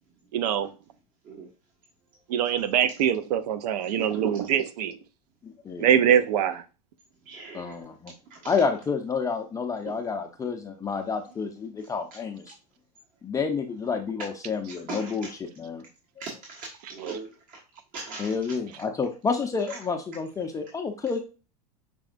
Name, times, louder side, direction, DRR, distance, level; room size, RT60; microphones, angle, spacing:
voice 1, 0.3-0.7 2.3-5.0 5.8-6.6 17.0-17.2, right 9 dB, 70° right, 0.6 m, -23 dB
voice 2, 3.8-4.5 7.2-7.8 8.3-8.6 9.9-10.0 14.7-15.3 16.2-17.6 17.9-18.4 19.7-19.8, right 4 dB, 45° right, 1.3 m, -40 dB
voice 3, 5.4-5.9 7.5-8.1 8.5-12.5 13.2-15.3 15.6-15.8 18.2-21.2, left 5 dB, 15° left, 0.5 m, -29 dB
5.9 x 3.4 x 2.4 m
hypercardioid pair, 105°, 21 cm